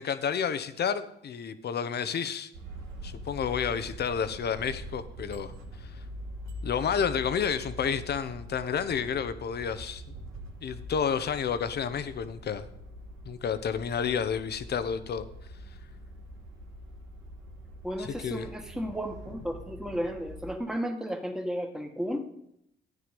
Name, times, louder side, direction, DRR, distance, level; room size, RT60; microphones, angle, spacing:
voice 1, 0.0-2.5 3.0-5.5 6.6-10.0 10.6-12.7 13.2-15.3 18.0-18.5, left 7 dB, 55° left, 11 dB, 1.0 m, -30 dB
sound 1, 2.5-20.5, equal, 90° right, 2.6 m, -44 dB
voice 2, 17.8-22.3, equal, 5° right, 4 dB, 1.8 m, -33 dB
13.0 x 9.3 x 5.3 m, 0.78 s
cardioid pair, 90°, 20 cm